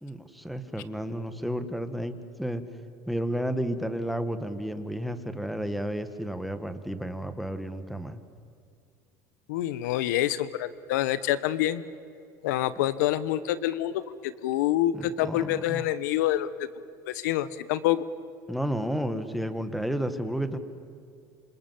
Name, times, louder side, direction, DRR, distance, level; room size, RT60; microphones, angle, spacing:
voice 1, 0.0-2.6 3.1-8.2 14.9-15.9 18.5-20.6, equal, ahead, 10 dB, 1.8 m, -32 dB
voice 2, 9.5-11.8 12.4-16.7 17.1-18.1, left 13 dB, 85° left, 16 dB, 1.1 m, -27 dB
27.5 x 26.5 x 7.8 m, 2.4 s
supercardioid pair, 110°, 9 cm